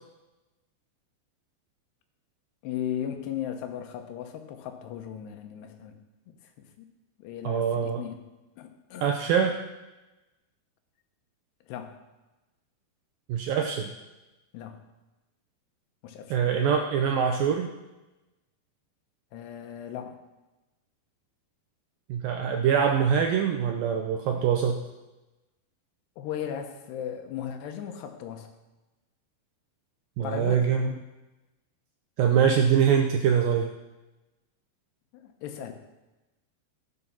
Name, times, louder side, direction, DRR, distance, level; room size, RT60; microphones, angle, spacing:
voice 1, 2.6-5.9 6.3-6.4 6.8-6.9 7.2-8.2 8.6-9.1 11.7-12.0 14.5-14.8 16.0-16.4 19.3-20.2 26.2-28.5 30.2-30.7 35.1-35.7, left 9 dB, 80° left, 6 dB, 3.1 m, -36 dB
voice 2, 7.4-8.0 9.0-9.6 13.3-13.9 16.3-17.7 22.1-24.8 30.2-30.9 32.2-33.7, right 7 dB, 85° right, 4 dB, 2.1 m, -24 dB
17.0 x 6.2 x 5.6 m, 1.1 s
omnidirectional pair, 4.8 m